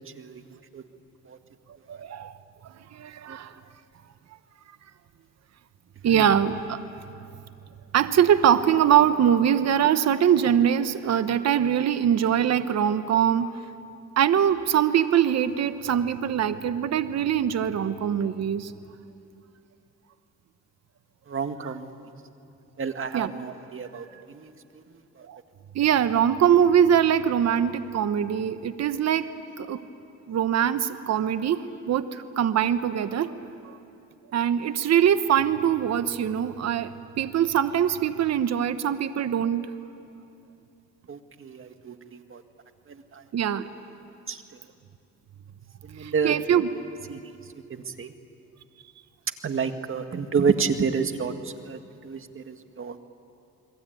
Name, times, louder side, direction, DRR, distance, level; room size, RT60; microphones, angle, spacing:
voice 1, 0.2-0.8 1.3-1.4 1.9-2.0 3.3-3.4 6.1-6.3 21.3-22.0 22.8-25.0 41.1-42.4 42.9-43.2 44.3-44.4 45.8-46.4 47.1-47.3 47.7-48.1 49.4-53.0, right 5 dB, 45° right, 7 dB, 1.9 m, -30 dB
voice 2, 1.9-2.3 2.9-3.5 6.0-6.8 7.9-13.5 14.2-18.7 21.6-21.7 23.1-23.3 24.1-24.2 25.3-25.4 25.7-29.3 29.6-29.8 30.3-33.3 34.3-39.7 43.3-43.7 46.0-46.7, right 9 dB, 60° right, 11 dB, 1.1 m, -23 dB
30.0 x 21.5 x 9.2 m, 2.6 s
cardioid pair, 90°, 30 cm